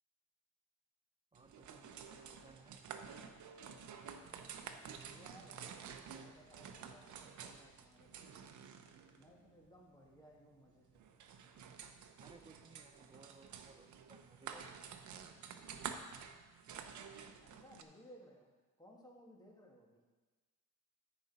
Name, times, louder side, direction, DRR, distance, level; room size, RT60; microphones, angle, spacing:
voice 1, 1.3-2.9 12.2-14.9, right 3 dB, 20° right, 7 dB, 0.5 m, -62 dB
sound 1, 1.3-17.8, right 7 dB, 70° right, 0.8 m, -51 dB
voice 2, 4.9-8.6 9.2-11.2 17.4-18.5 18.8-20.0, equal, 15° left, -1 dB, 1.9 m, -61 dB
13.5 x 5.2 x 4.1 m, 1.3 s
cardioid pair, 100°, 31 cm